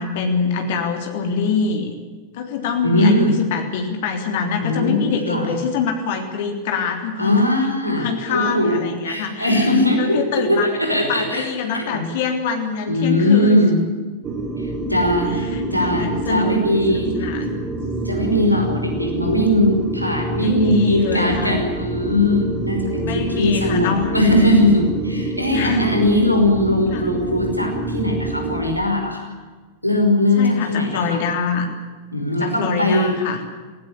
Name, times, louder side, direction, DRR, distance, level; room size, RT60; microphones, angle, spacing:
voice 1, 0.0-1.9 2.3-7.3 7.9-13.5 15.5-16.6 16.9-17.6 20.4-21.5 23.1-24.2 25.5-25.9 26.9-27.0 30.4-31.7 32.4-33.4, left 5 dB, 55° left, 4 dB, 3.4 m, -25 dB
voice 2, 2.8-3.3 4.6-5.5 7.2-11.5 11.7-12.0 12.9-13.8 14.6-17.3 18.0-29.3 29.8-31.2 32.1-33.1, left 1 dB, 90° left, 2 dB, 5.5 m, -19 dB
sound 1, 14.2-28.6, right 2 dB, 25° right, 4.6 m, -27 dB
20.0 x 18.5 x 10.0 m, 1.4 s
figure-of-eight pair, 90°, 0 cm